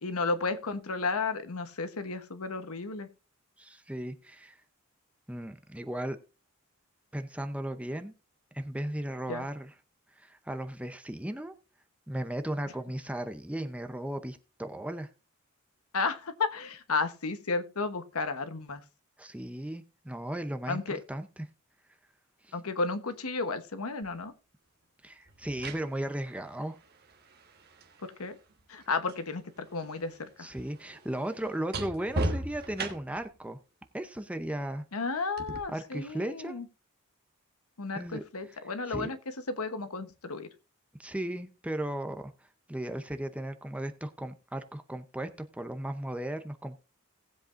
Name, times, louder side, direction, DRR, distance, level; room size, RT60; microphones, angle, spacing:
voice 1, 0.0-3.1 9.3-9.4 15.9-18.8 20.7-21.0 22.5-24.3 28.0-28.4 28.7-30.5 34.9-36.7 37.8-39.2 39.5-40.5, left 4 dB, 75° left, 10 dB, 1.1 m, -33 dB
voice 2, 3.6-4.6 5.3-6.2 7.1-8.1 8.5-9.7 10.2-11.5 12.1-15.1 19.2-20.8 21.1-21.5 22.4-22.5 25.0-26.8 30.4-33.6 33.9-34.8 35.7-36.6 37.9-38.2 38.5-38.6 38.9-39.1 41.0-42.3 42.7-46.8, right 1 dB, 5° right, 8 dB, 0.7 m, -36 dB
sound 1, 24.0-24.2 25.3-29.3 29.6-33.3 35.4-35.6, right 1 dB, 45° right, 1.3 m, -38 dB
18.5 x 7.7 x 2.6 m, 0.32 s
head